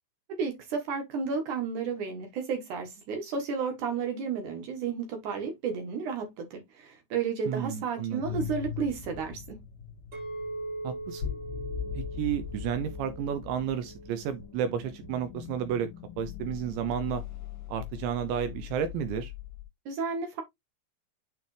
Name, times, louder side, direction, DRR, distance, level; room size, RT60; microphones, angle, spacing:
voice 1, 0.3-9.6 19.9-20.4, right 5 dB, 70° right, 1.9 m, -32 dB
voice 2, 7.5-8.5 10.8-11.2 12.0-15.9 16.2-17.2 17.7-19.3, right 8 dB, 85° right, 2.5 m, -32 dB
sound 1, 8.2-19.6, left 9 dB, 60° left, 2.6 m, -40 dB
Chink clink, 10.1-14.4 14.9-15.3, right 2 dB, 45° right, 1.4 m, -41 dB
9.3 x 3.3 x 3.2 m
omnidirectional pair, 6.0 m